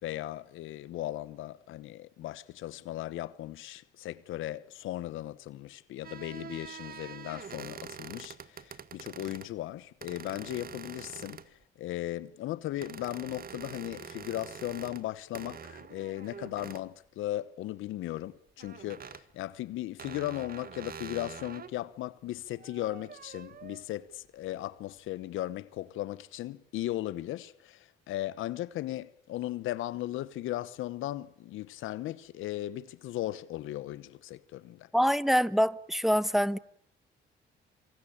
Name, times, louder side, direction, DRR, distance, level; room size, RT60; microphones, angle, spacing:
voice 1, 0.0-11.4 11.8-34.9, left 14 dB, 85° left, 1.1 m, -37 dB
squeay creaking door, 6.0-9.5 10.0-11.6 12.8-15.1 15.3-16.9 18.6-19.2 20.0-21.7 22.4-23.9, right 7 dB, 50° right, 1.7 m, -45 dB
voice 2, 34.9-36.6, equal, ahead, 1.2 m, -25 dB
26.5 x 25.0 x 8.7 m
cardioid pair, 90°, 20 cm